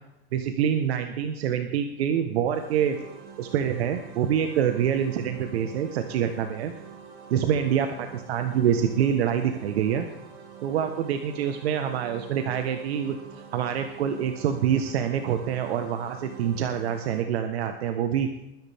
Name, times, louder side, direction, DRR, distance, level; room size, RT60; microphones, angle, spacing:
voice 1, 0.3-3.0 3.4-6.7 7.3-10.1 10.6-13.2 13.5-18.3, right 9 dB, 85° right, 7 dB, 1.4 m, -26 dB
sound 1, 2.5-17.2, right 7 dB, 55° right, 3.1 m, -46 dB
20.5 x 10.5 x 3.6 m, 0.93 s
supercardioid pair, 130°, 31 cm